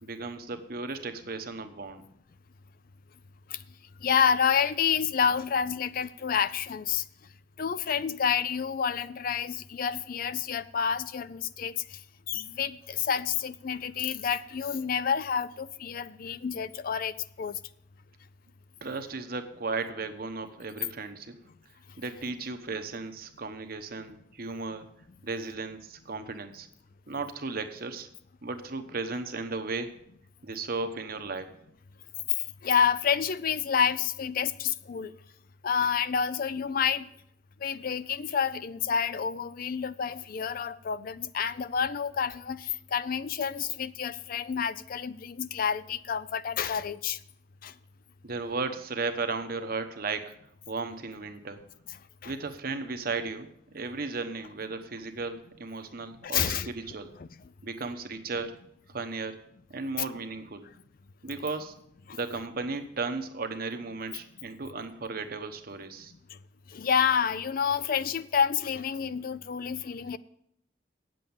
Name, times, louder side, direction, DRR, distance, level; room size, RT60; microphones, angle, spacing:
voice 1, 0.0-2.0 18.8-21.3 22.0-24.9 25.2-26.7 27.1-28.1 28.4-30.0 30.4-31.5 48.2-50.3 50.7-51.6 52.2-57.1 57.6-58.5 58.9-59.4 59.7-60.7 61.2-61.7 62.1-66.1, right 3 dB, 55° right, 8 dB, 1.0 m, -35 dB
voice 2, 4.0-7.0 7.6-12.0 12.3-17.6 32.6-35.1 35.6-37.1 37.6-47.2 47.6-47.7 52.2-52.3 56.2-56.7 57.2-57.3 60.0-60.1 62.1-62.2 66.7-70.2, left 7 dB, 50° left, 16 dB, 0.4 m, -29 dB
9.1 x 7.7 x 7.0 m, 0.73 s
head